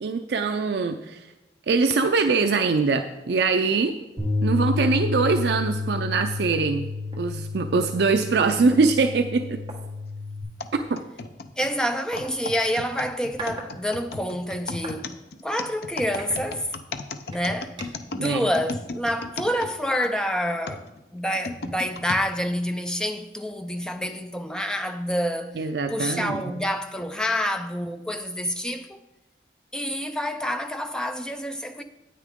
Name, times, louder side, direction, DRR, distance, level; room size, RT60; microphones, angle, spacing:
voice 1, 0.0-1.2 1.7-4.0 4.4-6.8 7.2-9.6 10.9-11.0 18.2-18.5 25.6-26.4, right 4 dB, 70° right, 0.4 m, -23 dB
sound 1, 3.7-3.9 4.4-4.5 4.9-5.2 6.2-6.3 6.5-7.9 8.7-8.8 9.6-9.8 10.8-10.9 12.1-12.3 13.0-13.7 14.0-15.0 15.5-15.6 16.1-16.9 17.3-18.1, right 2 dB, 25° right, 1.2 m, -42 dB
Bass guitar, 4.2-10.4, left 3 dB, 25° left, 2.7 m, -30 dB
sound 2, 10.6-20.1 20.7-22.2 22.9-23.0 23.8-24.1, left 3 dB, 60° left, 0.6 m, -35 dB
voice 2, 11.6-15.1 15.4-16.8 17.3-17.8 18.1-20.8 21.1-29.0 29.7-31.8, equal, 5° left, 0.4 m, -28 dB
9.4 x 9.1 x 3.6 m
head